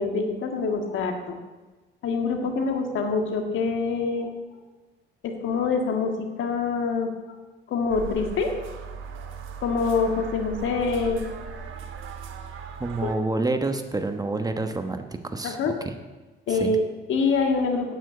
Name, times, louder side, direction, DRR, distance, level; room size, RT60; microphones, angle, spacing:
voice 1, 0.0-1.4 2.0-4.3 5.2-7.1 7.7-8.5 9.6-11.6 13.0-13.1 15.4-15.7 16.5-17.9, left 4 dB, 75° left, 4 dB, 1.8 m, -25 dB
sound 1, 7.9-13.2, right 6 dB, 85° right, 1.3 m, -38 dB
voice 2, 12.8-15.9 16.5-16.8, right 2 dB, 20° right, 7 dB, 1.1 m, -28 dB
9.1 x 9.0 x 8.0 m, 1.2 s
cardioid pair, 90°, 20 cm